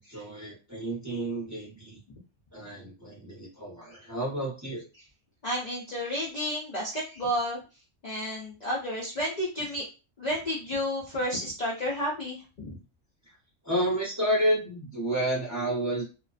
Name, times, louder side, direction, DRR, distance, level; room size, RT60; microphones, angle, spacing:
voice 1, 0.0-2.0 2.5-4.8 13.3-13.4 13.6-16.0, right 1 dB, 15° right, -4 dB, 0.7 m, -30 dB
voice 2, 5.4-7.6 8.0-9.8 10.2-12.7, equal, 50° left, -3 dB, 0.5 m, -31 dB
2.4 x 2.2 x 2.4 m, 0.32 s
omnidirectional pair, 1.3 m